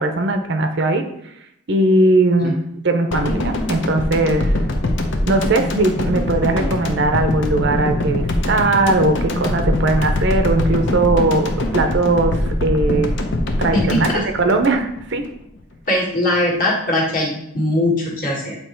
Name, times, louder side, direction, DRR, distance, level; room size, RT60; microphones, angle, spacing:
voice 1, 0.0-1.3 1.7-2.6 2.8-4.6 5.3-13.2 13.6-15.3, right 2 dB, 50° right, 6 dB, 0.6 m, -19 dB
sound 1, 3.1-15.3 15.6-15.7, left 1 dB, 55° left, 0.7 m, -22 dB
voice 2, 13.7-14.2 15.9-18.5, left 1 dB, 40° left, -3 dB, 1.7 m, -20 dB
8.5 x 3.0 x 4.4 m, 0.76 s
head